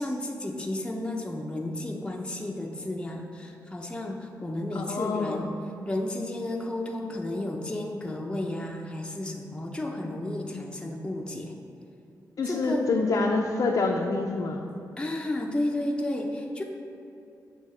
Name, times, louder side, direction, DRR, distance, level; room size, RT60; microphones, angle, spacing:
voice 1, 0.0-5.6 5.9-11.6 12.5-12.9 15.0-16.6, left 1 dB, 15° left, 1 dB, 0.6 m, -32 dB
voice 2, 4.7-5.5 12.4-14.6, left 3 dB, 55° left, -1 dB, 0.5 m, -26 dB
7.5 x 2.7 x 5.6 m, 2.6 s
cardioid pair, 70°, 7 cm